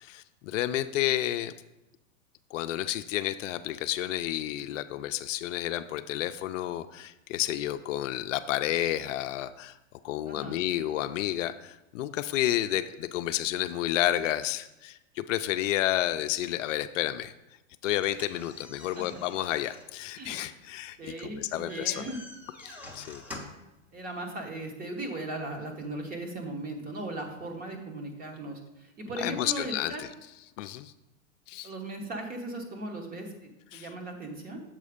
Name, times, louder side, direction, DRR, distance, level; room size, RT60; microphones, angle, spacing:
voice 1, 0.0-1.5 2.5-9.8 10.0-17.3 17.8-22.1 22.6-23.2 29.2-30.1 30.6-30.9 31.5-31.7 33.7-33.9, left 13 dB, 70° left, 10 dB, 0.5 m, -31 dB
voice 2, 10.2-10.6 18.8-19.0 20.2-20.6 21.0-22.2 23.9-30.0 31.6-34.6, right 2 dB, 20° right, 3 dB, 1.0 m, -38 dB
sound 1, 17.9-23.7, left 2 dB, 5° right, 0.8 m, -47 dB
7.3 x 4.1 x 5.0 m, 0.96 s
hypercardioid pair, 130°, 39 cm